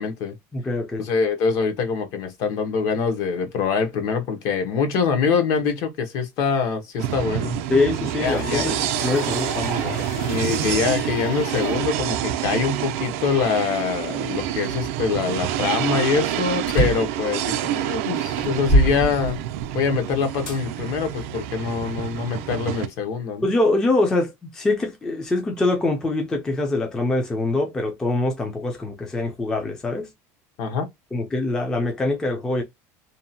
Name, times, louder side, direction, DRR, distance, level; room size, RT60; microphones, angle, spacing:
voice 1, 0.0-0.4 1.0-7.6 8.2-8.7 10.2-19.4 19.7-23.5 30.6-30.9, left 5 dB, 50° left, 0.7 m, -24 dB
voice 2, 0.5-1.1 7.7-10.0 23.4-30.1 31.1-32.6, left 2 dB, 10° left, 0.3 m, -24 dB
sound 1, 7.0-22.9, right 12 dB, 90° right, 0.4 m, -27 dB
sound 2, 8.2-11.9, left 10 dB, 90° left, 0.4 m, -36 dB
sound 3, 16.7-17.2 17.8-17.9 18.4-19.8 20.5-20.6 21.3-22.4, right 1 dB, 70° left, 1.5 m, -22 dB
2.7 x 2.1 x 2.6 m
cardioid pair, 175°, 7 cm